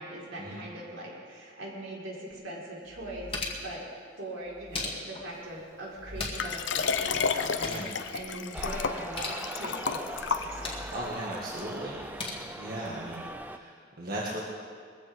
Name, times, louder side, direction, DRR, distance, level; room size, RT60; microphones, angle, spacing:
voice 1, 0.0-3.9 4.2-7.8 8.1-10.8, right 1 dB, 80° right, -5 dB, 4.5 m, -41 dB
sound 1, 2.3-2.4 2.9-3.8 4.4-5.3 5.9-6.6 6.9-7.0 7.3-7.9 8.9-9.4 10.3-10.9 11.9-12.3, left 3 dB, 30° left, 1.9 m, -38 dB
Liquid, 6.4-10.9 11.6-11.7, left 5 dB, 65° left, 0.7 m, -31 dB
voice 2, 7.6-7.9 10.9-12.0 12.6-14.4, right 1 dB, 50° right, -5 dB, 1.9 m, -37 dB
sound 2, 8.5-13.6, right 1 dB, 10° right, 0.5 m, -41 dB
21.5 x 15.0 x 3.7 m, 2.1 s
head